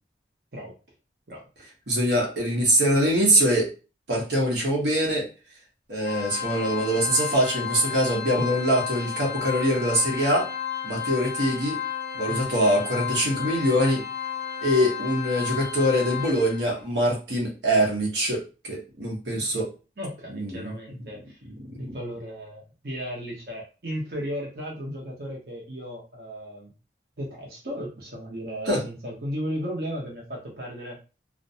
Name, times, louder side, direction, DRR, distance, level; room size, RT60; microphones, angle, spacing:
voice 1, 1.9-3.7 4.1-5.3 5.9-10.5 10.8-11.8 12.1-14.0 14.6-19.7 20.3-20.7 21.4-21.5 21.9-22.0 28.7-28.8, equal, 85° right, -1 dB, 0.9 m, -23 dB
Organ, 6.0-16.8, left 8 dB, 60° left, 0.4 m, -33 dB
voice 2, 20.0-21.4 21.8-26.7 27.2-31.0, equal, 60° right, -2 dB, 0.7 m, -35 dB
2.5 x 2.1 x 2.6 m, 0.33 s
head